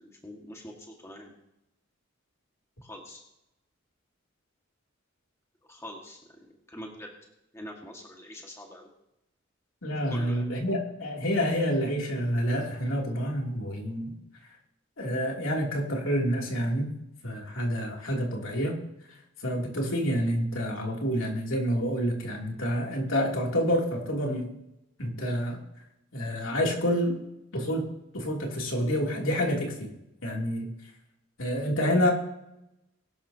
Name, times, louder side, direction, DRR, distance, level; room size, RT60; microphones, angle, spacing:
voice 1, 0.0-1.3 2.8-3.2 5.7-7.1 7.5-8.9 10.1-10.5, left 1 dB, 15° left, 0 dB, 1.8 m, -44 dB
voice 2, 9.8-14.1 15.0-16.9 17.2-18.8 19.4-24.5 25.0-25.6 26.1-27.2 27.5-27.9 28.1-29.9 30.2-30.7 31.4-32.1, equal, 75° left, 0 dB, 3.0 m, -28 dB
22.0 x 12.0 x 2.9 m, 0.86 s
head